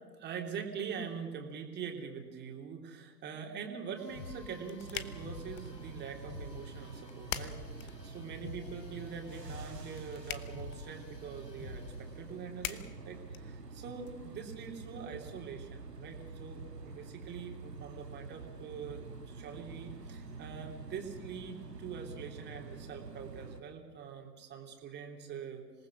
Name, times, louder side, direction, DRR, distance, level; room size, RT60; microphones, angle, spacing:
voice 1, 0.2-25.6, right 6 dB, 20° right, 2 dB, 3.2 m, -44 dB
sound 1, 4.0-12.2, left 3 dB, 85° left, 3.1 m, -49 dB
sound 2, 4.1-14.1, left 12 dB, 25° left, 1.0 m, -47 dB
sound 3, 4.8-23.6, right 4 dB, 85° right, 2.1 m, -47 dB
26.5 x 19.0 x 6.5 m, 1.4 s
figure-of-eight pair, 110°, 48 cm